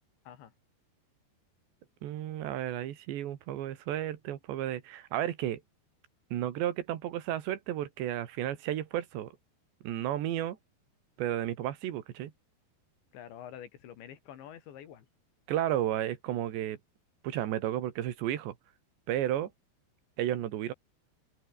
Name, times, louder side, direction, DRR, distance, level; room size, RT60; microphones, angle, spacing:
voice 1, 2.0-5.6 6.3-9.3 9.8-10.6 11.2-12.3 15.5-16.8 17.2-18.5 19.1-19.5 20.2-20.7, right 12 dB, 80° right, 4.0 m, -32 dB
voice 2, 13.1-15.1, left 10 dB, 80° left, 4.9 m, -47 dB
open air
omnidirectional pair, 5.1 m